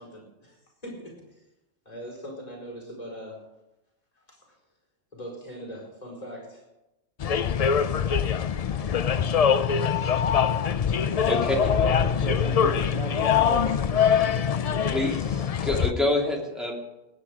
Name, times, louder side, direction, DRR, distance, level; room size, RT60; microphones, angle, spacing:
voice 1, 0.0-1.4 1.8-3.4 4.1-4.5 5.1-6.6, equal, 30° left, -2 dB, 4.8 m, -41 dB
sound 1, 7.2-15.9, left 7 dB, 80° left, 0.3 m, -23 dB
voice 2, 11.2-13.8, right 2 dB, 80° right, 0 dB, 3.1 m, -35 dB
voice 3, 14.9-16.8, left 1 dB, ahead, -2 dB, 2.8 m, -27 dB
19.5 x 9.3 x 5.1 m, 0.95 s
omnidirectional pair, 1.3 m